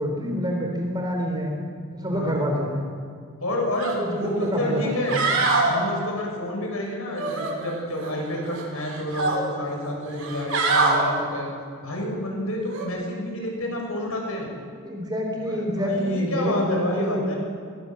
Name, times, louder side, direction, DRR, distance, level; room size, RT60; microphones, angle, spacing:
voice 1, 0.0-1.6 1.9-2.9 4.0-4.9 14.8-17.3, equal, 20° right, 1 dB, 3.7 m, -26 dB
voice 2, 2.1-2.5 3.4-5.2 5.6-11.5 11.8-14.5 15.4-17.4, left 1 dB, 75° left, 0 dB, 7.0 m, -29 dB
sound 1, 3.8-4.0 4.4-4.5 4.9-5.7 7.2-8.1 8.5-9.4 10.1-11.0 12.7-12.9, right 3 dB, 70° right, 5.6 m, -24 dB
22.5 x 20.0 x 7.9 m, 2.2 s
head